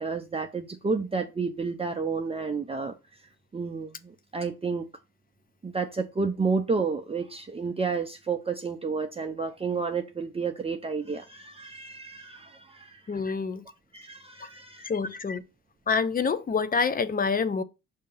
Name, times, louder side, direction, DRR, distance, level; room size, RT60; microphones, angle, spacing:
voice 1, 0.0-2.9 3.5-4.9 5.6-13.2 13.9-14.9, right 4 dB, 20° right, 0.6 m, -31 dB
voice 2, 13.1-13.6 14.4-14.5 14.8-15.4 15.9-17.6, left 5 dB, 30° left, 0.6 m, -27 dB
6.4 x 2.9 x 5.4 m
cardioid pair, 90°, 30 cm